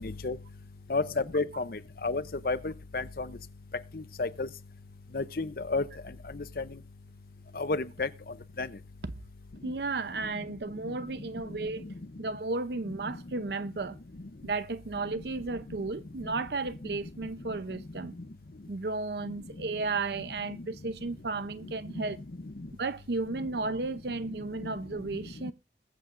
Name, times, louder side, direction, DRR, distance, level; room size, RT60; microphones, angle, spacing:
voice 1, 0.0-0.4 0.9-1.0 1.3-3.3 3.9-4.5 5.1-5.8 6.6-6.7 7.6-8.1 8.6-8.7, left 3 dB, 55° left, 0.7 m, -31 dB
voice 2, 9.6-14.0 14.4-18.1 18.7-22.2 22.8-25.5, right 3 dB, 70° right, 0.7 m, -34 dB
21.5 x 8.4 x 2.6 m
head